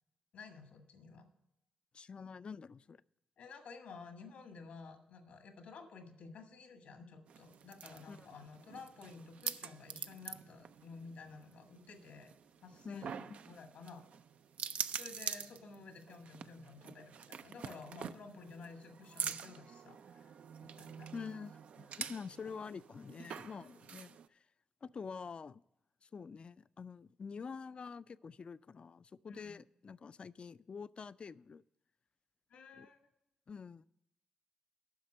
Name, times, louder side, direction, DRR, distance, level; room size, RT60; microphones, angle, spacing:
voice 1, 0.3-1.3 3.4-12.3 12.6-14.0 14.9-21.1 29.3-29.5 32.5-33.1, left 4 dB, 80° left, 1.5 m, -53 dB
voice 2, 1.9-3.0 8.1-8.3 12.8-13.4 21.1-24.4 24.8-25.6 26.0-31.6 32.8-32.9 33.5-33.9, left 5 dB, 50° left, 0.3 m, -47 dB
sound 1, 7.3-24.3, right 7 dB, 70° right, 0.4 m, -46 dB
9.5 x 6.0 x 7.6 m
supercardioid pair, 50°, 2 cm